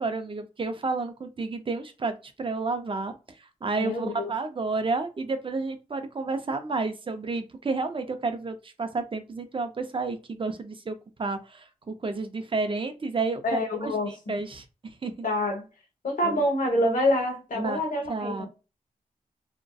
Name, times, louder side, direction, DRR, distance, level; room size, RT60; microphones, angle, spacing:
voice 1, 0.0-3.1 3.6-15.3 16.2-16.4 17.6-17.8 18.1-18.5, right 3 dB, 40° right, 0.4 m, -31 dB
voice 2, 3.8-4.3 13.4-14.1 15.2-15.7 16.0-18.5, left 1 dB, 70° left, 0.9 m, -26 dB
2.6 x 2.1 x 2.3 m
cardioid pair, 70°, 14 cm